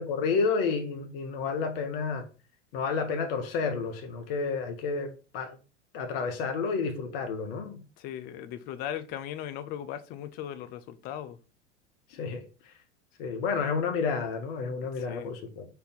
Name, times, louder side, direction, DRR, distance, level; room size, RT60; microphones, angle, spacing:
voice 1, 0.0-2.2 2.7-5.6 5.9-7.8 12.1-12.4 13.2-15.7, left 5 dB, 50° left, 0.9 m, -30 dB
voice 2, 8.0-11.4 15.0-15.3, left 10 dB, 25° left, 0.3 m, -38 dB
4.4 x 2.6 x 3.9 m
figure-of-eight pair, 85°, 36 cm